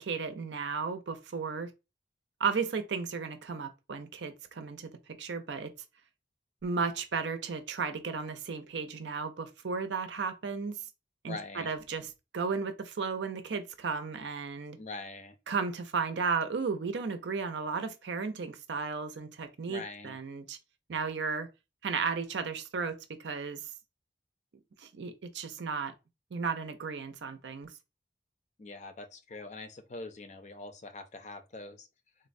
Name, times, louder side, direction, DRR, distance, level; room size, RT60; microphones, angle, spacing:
voice 1, 0.0-1.7 2.4-4.9 5.2-5.7 6.6-10.8 11.2-14.8 15.5-20.6 20.9-21.5 21.8-23.7 24.8-25.9 26.3-27.7, right 5 dB, 90° right, 0.5 m, -34 dB
voice 2, 11.3-11.7 14.8-15.4 19.7-20.2 28.6-31.9, left 3 dB, 40° left, 0.4 m, -43 dB
3.9 x 2.1 x 2.5 m
head